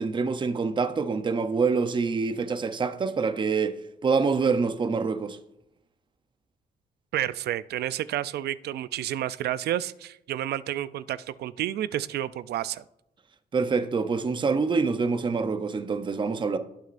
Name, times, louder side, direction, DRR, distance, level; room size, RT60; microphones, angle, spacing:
voice 1, 0.0-5.4 13.5-16.6, right 4 dB, 30° right, 0.6 m, -26 dB
voice 2, 7.1-12.8, right 12 dB, 70° right, 0.4 m, -30 dB
18.0 x 6.3 x 2.5 m
cardioid pair, 120°, 17 cm